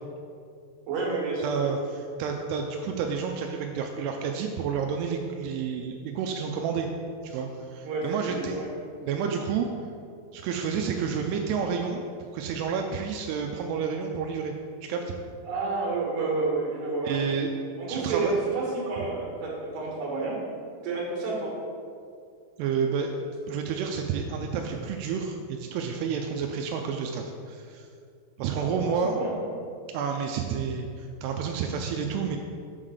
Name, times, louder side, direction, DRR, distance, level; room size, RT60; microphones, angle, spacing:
voice 1, 0.9-1.7 7.8-8.7 15.4-17.2 17.8-20.4 20.8-21.5 28.5-29.3, right 3 dB, 60° right, -3 dB, 2.8 m, -30 dB
voice 2, 1.4-6.9 7.2-8.6 9.0-9.7 10.3-14.5 14.8-15.1 17.0-17.5 17.9-18.3 22.6-23.1 23.5-27.9 28.4-29.1 29.9-32.4, right 6 dB, 85° right, 3 dB, 2.4 m, -30 dB
7.2 x 3.8 x 6.3 m, 2.3 s
omnidirectional pair, 5.2 m